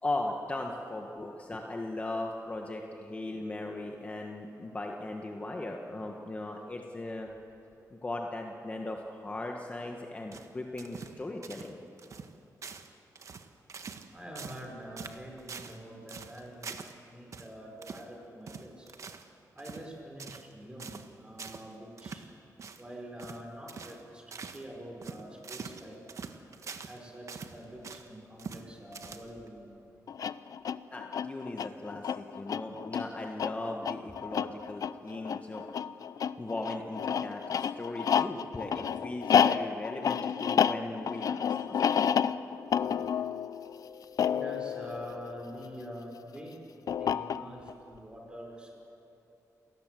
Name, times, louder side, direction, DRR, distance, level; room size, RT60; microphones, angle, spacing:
voice 1, 0.0-7.3 7.9-11.8 30.9-35.6 36.4-41.9, left 2 dB, 20° left, 2 dB, 1.4 m, -38 dB
sound 1, 10.3-11.2 11.4-11.7 12.0-12.3 12.6-12.9 13.2-14.1 14.4-14.7 15.0-15.8 16.1-17.0 17.3-17.5 17.8-18.1 18.5-19.3 19.6-19.9 20.2-20.5 20.8-21.1 21.4-21.7 22.0-22.3 22.6-22.8 23.2-23.4 23.7-24.0 24.3-24.6 25.0-27.0 27.3-28.1 28.4-28.7 28.9-29.5, right 5 dB, 55° right, 1.3 m, -44 dB
voice 2, 14.1-16.7 17.0-18.8 19.5-22.2 22.8-24.2 24.5-26.0 26.8-29.7 44.2-46.6 47.0-48.7, equal, 15° right, 1 dB, 5.1 m, -45 dB
sound 2, 30.1-45.8 46.9-47.7, left 8 dB, 70° left, 0.6 m, -30 dB
28.5 x 18.5 x 7.7 m, 3.0 s
wide cardioid pair, 135°, 6 cm